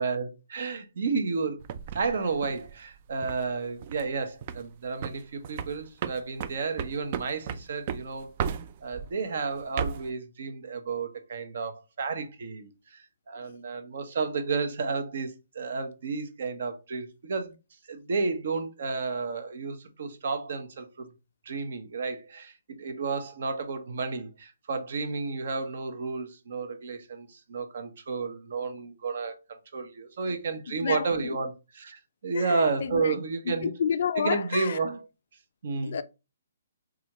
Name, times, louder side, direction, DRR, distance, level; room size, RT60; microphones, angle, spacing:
voice 1, 0.0-1.6 1.9-17.5 17.9-21.1 21.4-29.4 29.7-33.7 34.2-35.0 35.6-36.0, right 4 dB, 60° right, 0.8 m, -32 dB
sound 1, 1.6-3.4 3.8-4.1 4.4-4.7 5.0-9.1 9.5-10.1, right 7 dB, 35° right, 0.3 m, -35 dB
voice 2, 30.8-31.4 32.3-33.2 33.5-34.8 35.8-36.0, left 7 dB, 60° left, 0.4 m, -30 dB
4.1 x 2.4 x 3.0 m
hypercardioid pair, 155°, 0 cm